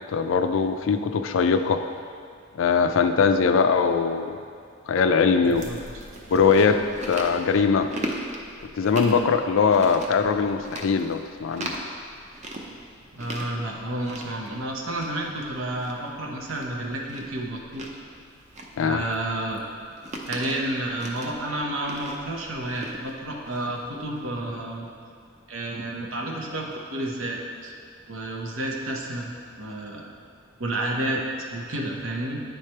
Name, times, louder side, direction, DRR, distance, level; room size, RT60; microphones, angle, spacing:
voice 1, 0.1-1.8 2.5-4.4 4.9-5.7 6.3-7.9 8.8-11.7 18.8-19.0, left 5 dB, 70° left, 8 dB, 0.4 m, -21 dB
Chewing mastication, 5.4-24.4, right 1 dB, 35° right, 0.6 m, -39 dB
voice 2, 5.4-5.8 13.1-17.8 18.8-19.6 20.2-24.9 25.5-27.7 28.1-30.1 30.6-32.4, right 1 dB, 80° right, -1 dB, 0.9 m, -30 dB
9.3 x 3.3 x 4.4 m, 2.2 s
head